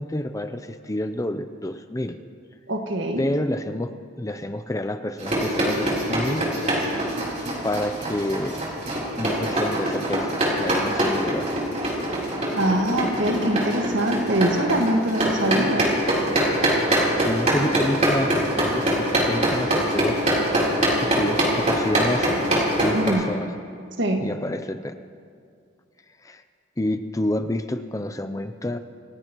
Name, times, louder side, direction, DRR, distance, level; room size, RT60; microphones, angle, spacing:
voice 1, 0.0-2.2 3.2-3.9 4.2-6.5 7.6-8.6 9.2-11.5 17.2-20.2 21.0-23.6 24.2-24.9 26.2-26.4 26.8-28.8, left 1 dB, 15° left, 9 dB, 0.5 m, -28 dB
voice 2, 2.7-3.2 12.6-15.9 22.9-23.3 24.0-24.2, right 1 dB, 65° right, 3 dB, 1.8 m, -23 dB
sound 1, 5.2-23.1, right 1 dB, 35° right, 3.7 m, -24 dB
27.5 x 16.5 x 3.1 m, 2.3 s
head